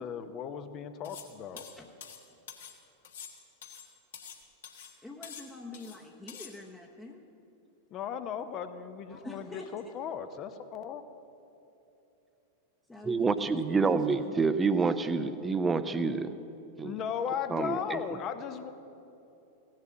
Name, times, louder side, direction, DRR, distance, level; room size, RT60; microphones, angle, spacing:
voice 1, 0.0-1.6 7.9-11.0 16.8-18.7, left 8 dB, 35° left, 9 dB, 0.8 m, -36 dB
sound 1, 1.0-1.3 1.6-2.8 3.0-4.4 4.6-4.9 5.2-6.0 6.3-6.5, left 7 dB, 60° left, 1.3 m, -46 dB
voice 2, 1.5-1.9 5.0-7.2 9.1-9.9 12.9-13.6 13.8-14.4, left 2 dB, 10° left, -2 dB, 0.9 m, -46 dB
voice 3, 13.0-16.3 16.8-17.0 17.5-18.2, right 4 dB, 15° right, 12 dB, 0.6 m, -28 dB
16.0 x 7.5 x 7.4 m, 2.9 s
figure-of-eight pair, 90°, 0 cm